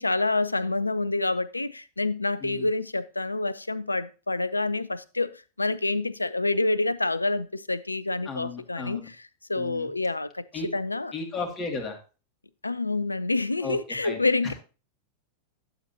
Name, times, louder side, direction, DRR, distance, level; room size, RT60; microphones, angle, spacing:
voice 1, 0.0-9.0 9.5-10.4 10.7-11.1 12.6-14.5, left 2 dB, 80° left, 0.5 m, -27 dB
voice 2, 8.3-9.1 9.6-9.9 10.5-10.7 11.1-12.0 13.6-14.5, left 4 dB, 30° left, 2.4 m, -35 dB
11.5 x 8.0 x 2.9 m
figure-of-eight pair, 90°, 0 cm